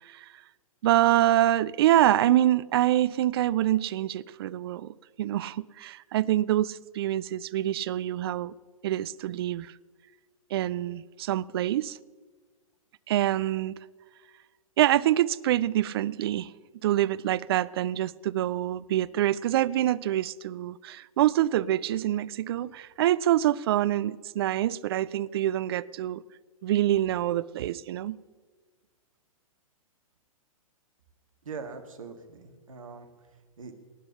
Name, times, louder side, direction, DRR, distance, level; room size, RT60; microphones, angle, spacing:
voice 1, 0.8-8.5 8.8-9.7 10.5-12.0 13.1-13.8 14.8-16.5 16.8-26.2 26.6-28.2, right 13 dB, 45° right, 0.4 m, -26 dB
voice 2, 31.4-33.1 33.6-33.8, right 5 dB, 65° right, 1.8 m, -41 dB
19.0 x 9.6 x 5.6 m
figure-of-eight pair, 110°, 18 cm